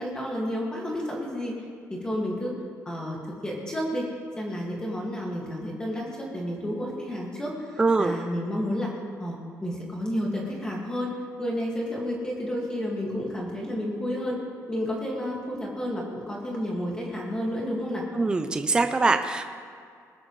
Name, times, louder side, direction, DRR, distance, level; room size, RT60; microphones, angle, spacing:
voice 1, 0.0-1.5 1.9-2.6 2.9-4.1 4.4-8.9 9.2-11.1 11.4-14.4 14.7-18.1, equal, 10° left, -3 dB, 2.0 m, -31 dB
voice 2, 7.8-8.2 18.1-19.4, right 3 dB, 15° right, 7 dB, 0.5 m, -23 dB
20.5 x 12.5 x 3.2 m, 2.2 s
cardioid pair, 175°, 6 cm